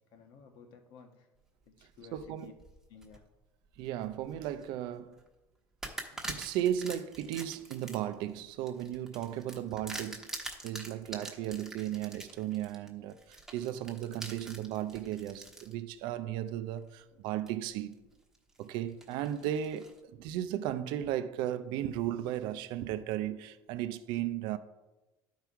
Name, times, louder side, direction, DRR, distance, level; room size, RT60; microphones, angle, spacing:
voice 1, 0.1-1.3 1.7-2.5 2.9-3.2 17.1-17.3, left 6 dB, 70° left, 1.3 m, -55 dB
sound 1, 1.9-3.2 3.7-4.7 5.1-5.3 5.8-15.7 16.3-16.4 17.5-17.9 18.3-20.0, right 2 dB, 5° right, 1.2 m, -45 dB
voice 2, 2.1-2.5 3.8-5.2 6.2-18.0 18.6-24.6, right 11 dB, 75° right, 0.5 m, -35 dB
11.0 x 4.7 x 4.6 m
cardioid pair, 125°, 8 cm